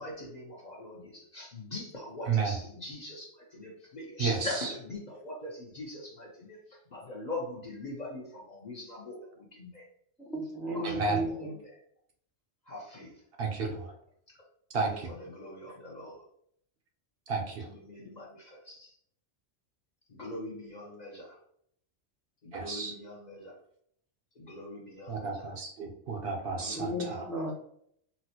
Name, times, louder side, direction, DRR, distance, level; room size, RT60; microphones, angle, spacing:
voice 1, 0.0-9.9 10.7-11.8 12.7-13.2 14.3-14.4 14.8-16.2 17.6-19.0 20.1-21.4 22.4-23.6 24.4-25.5 26.6-27.5, left 1 dB, 45° left, -2 dB, 0.6 m, -42 dB
voice 2, 4.2-4.7 10.8-11.2 13.4-13.9 14.7-15.1 17.3-17.7 22.5-22.9 25.1-27.3, right 4 dB, 60° right, 1 dB, 0.7 m, -32 dB
voice 3, 10.3-11.5 26.8-27.5, right 1 dB, ahead, -2 dB, 0.3 m, -34 dB
4.0 x 2.1 x 2.7 m, 0.68 s
omnidirectional pair, 1.2 m